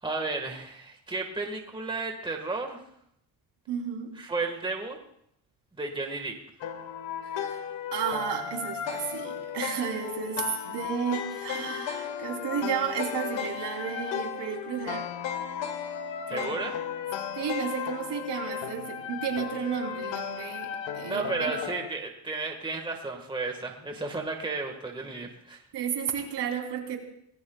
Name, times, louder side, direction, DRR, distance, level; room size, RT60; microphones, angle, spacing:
voice 1, 0.0-2.8 4.2-5.0 5.8-6.3 16.3-16.8 21.0-25.6, right 3 dB, 10° right, 3 dB, 1.7 m, -33 dB
voice 2, 3.7-4.1 7.3-7.6 7.9-15.1 16.3-16.7 17.4-21.5 25.7-27.0, right 8 dB, 65° right, 1 dB, 3.6 m, -33 dB
sound 1, 6.6-21.9, left 8 dB, 85° left, 1.5 m, -35 dB
27.0 x 18.5 x 2.4 m, 0.73 s
cardioid pair, 135°, 44 cm